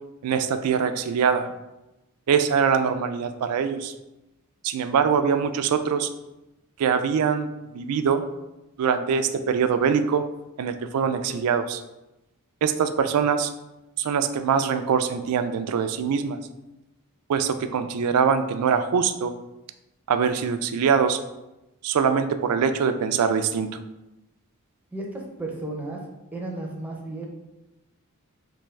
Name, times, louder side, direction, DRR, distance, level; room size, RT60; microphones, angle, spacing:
voice 1, 0.2-1.5 2.3-3.9 4.6-6.1 6.8-7.5 7.7-8.2 8.8-10.2 10.6-11.8 12.6-13.5 14.0-16.4 17.3-19.3 20.1-21.2 21.8-23.7, right 6 dB, 80° right, 9 dB, 0.3 m, -23 dB
voice 2, 24.9-26.0 26.3-27.3, right 2 dB, 10° right, -1 dB, 0.5 m, -33 dB
3.5 x 2.5 x 3.2 m, 0.96 s
head